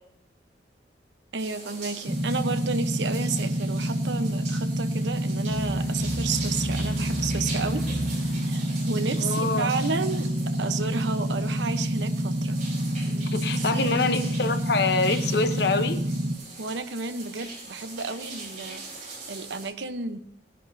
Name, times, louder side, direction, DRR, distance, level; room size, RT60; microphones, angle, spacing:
voice 1, 1.3-7.9 8.5-10.3 10.6-12.6 13.2-14.0 16.6-20.2, right 4 dB, 75° right, 9 dB, 0.9 m, -32 dB
sound 1, 1.4-19.7, right 3 dB, 40° right, 5.3 m, -42 dB
sound 2, 2.1-16.4, right 1 dB, 20° right, 1.0 m, -28 dB
sound 3, 5.5-9.5 11.1-11.3, right 1 dB, 35° left, 5.0 m, -38 dB
voice 2, 9.2-9.7 13.3-16.0, left 3 dB, 60° left, 9 dB, 0.9 m, -25 dB
17.0 x 10.5 x 2.7 m, 0.77 s
head